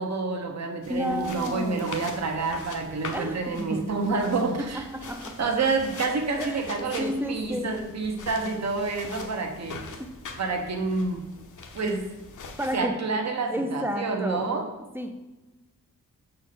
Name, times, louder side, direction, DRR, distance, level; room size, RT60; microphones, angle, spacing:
voice 1, 0.0-4.8 5.4-9.9 10.4-11.2 11.7-12.0 12.7-14.7, right 3 dB, 50° right, 4 dB, 1.1 m, -28 dB
sound 1, 0.8-12.8, left 4 dB, 65° left, 1.0 m, -42 dB
voice 2, 0.9-2.0 3.1-4.1 4.6-5.4 6.4-7.8 10.0-10.1 12.6-13.0 13.5-14.6 14.9-15.1, equal, 5° right, 6 dB, 0.5 m, -32 dB
6.5 x 4.6 x 5.9 m, 1.1 s
wide cardioid pair, 180°, 33 cm